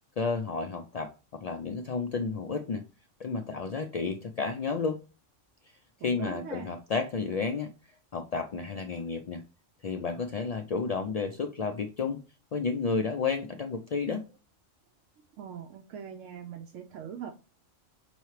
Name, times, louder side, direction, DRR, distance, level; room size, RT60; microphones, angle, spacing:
voice 1, 0.2-2.8 3.2-5.0 6.0-7.7 8.1-9.4 9.8-12.2 12.5-14.2, left 4 dB, 75° left, 0.3 m, -31 dB
voice 2, 6.0-6.7 15.4-17.3, right 8 dB, 80° right, 1.0 m, -41 dB
5.5 x 3.1 x 3.1 m
omnidirectional pair, 1.3 m